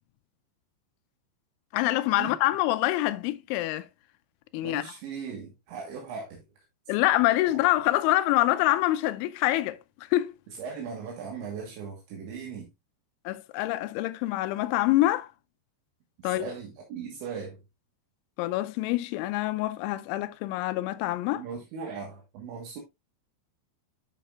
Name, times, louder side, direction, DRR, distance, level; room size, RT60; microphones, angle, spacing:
voice 1, 1.7-3.9 4.5-4.8 6.9-9.8 10.1-10.3 13.3-15.3 16.2-16.5 18.4-21.4, left 16 dB, 85° left, 3.0 m, -25 dB
voice 2, 4.6-6.4 7.5-7.6 10.6-12.7 16.2-17.6 21.3-22.8, right 6 dB, 75° right, 3.7 m, -38 dB
10.0 x 6.2 x 2.4 m
omnidirectional pair, 5.4 m